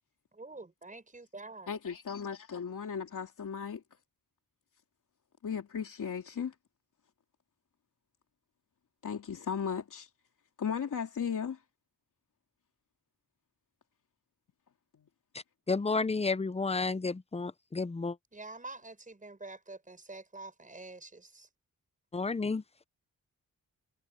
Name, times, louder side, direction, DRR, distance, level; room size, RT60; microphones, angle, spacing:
voice 1, 0.3-1.7 18.3-21.5, right 3 dB, 25° right, 6.2 m, -47 dB
voice 2, 1.7-3.8 5.4-6.5 9.0-10.1 10.6-11.6 15.0-15.1, left 7 dB, 65° left, 2.9 m, -36 dB
voice 3, 15.7-18.2 22.1-22.6, left 4 dB, 20° left, 0.7 m, -31 dB
cardioid pair, 90°, 34 cm